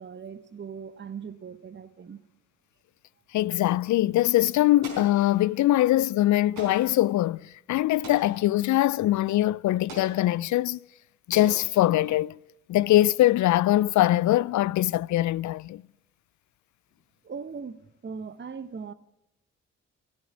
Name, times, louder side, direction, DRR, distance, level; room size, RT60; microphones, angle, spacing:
voice 1, 0.0-2.2 17.2-18.9, right 6 dB, 30° right, 0.9 m, -39 dB
voice 2, 3.3-10.8 11.3-12.4 12.7-15.8, left 15 dB, 55° left, 0.4 m, -22 dB
Explosion, 4.8-5.7 6.6-7.1 8.0-8.6 9.9-10.4 11.3-12.2, right 3 dB, 75° right, 4.4 m, -43 dB
15.5 x 8.7 x 8.1 m
hypercardioid pair, 40°, 36 cm